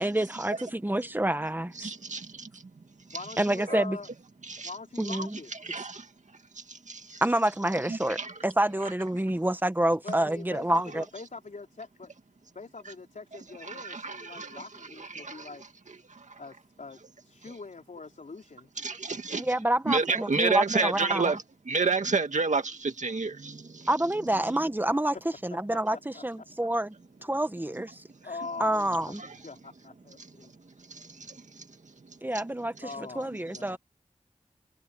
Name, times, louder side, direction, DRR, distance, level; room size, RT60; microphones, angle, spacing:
voice 1, 0.0-1.9 3.4-4.0 5.0-5.4 7.2-8.2 8.4-11.0 19.4-21.3 23.9-25.2 25.4-26.9 27.2-28.0 28.6-29.2 32.2-33.8, right 1 dB, 15° right, 1.4 m, -28 dB
voice 2, 1.8-2.6 3.1-3.2 3.7-3.8 4.5-4.7 5.1-5.2 5.6-6.1 6.7-7.2 7.9-8.3 13.6-14.6 15.0-15.5 18.8-19.5 19.9-23.9 30.9-31.7, right 4 dB, 70° right, 2.2 m, -30 dB
voice 3, 3.1-4.1 4.6-5.5 10.0-12.1 12.6-15.6 16.4-18.7 24.9-25.0 25.7-26.2 27.2-27.4 28.2-29.2 29.4-30.5 32.8-33.8, left 4 dB, 85° left, 3.8 m, -43 dB
wide cardioid pair, 55°, 13 cm